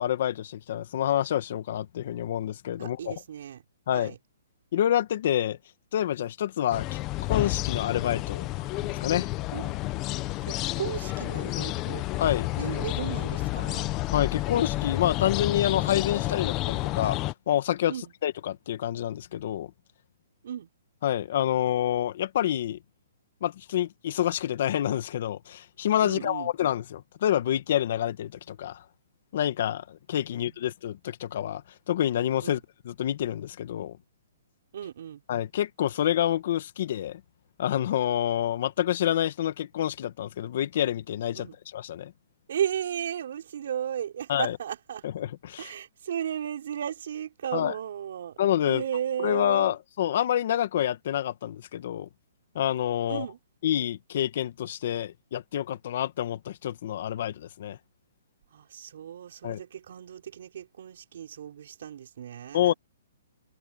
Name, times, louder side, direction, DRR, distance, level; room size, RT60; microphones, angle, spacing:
voice 1, 0.0-3.1 3.9-4.1 4.7-5.6 5.9-6.9 7.3-9.3 12.2-12.5 14.1-17.2 17.5-17.9 18.2-19.7 21.0-22.8 23.4-28.8 29.3-31.6 31.9-32.6 32.9-34.0 35.3-37.2 37.6-41.5 41.7-42.1 44.3-44.6 45.0-45.7 47.5-47.7 48.4-48.8 49.2-52.1 52.6-53.3 53.6-57.8 59.4-59.6 62.5-62.7, left 11 dB, 50° left, 1.9 m, -27 dB
voice 2, 2.8-3.6 3.9-4.2 9.5-9.7 10.4-12.0 12.6-13.9 17.9-18.1 20.4-20.7 26.0-26.5 30.3-30.4 32.4-32.6 34.7-35.2 41.3-41.6 42.5-45.1 45.6-48.4 48.7-49.8 53.0-53.4 58.5-62.7, right 9 dB, 60° right, 5.2 m, -35 dB
sound 1, 6.7-17.3, left 18 dB, 20° left, 1.3 m, -30 dB
hypercardioid pair, 165°, 0 cm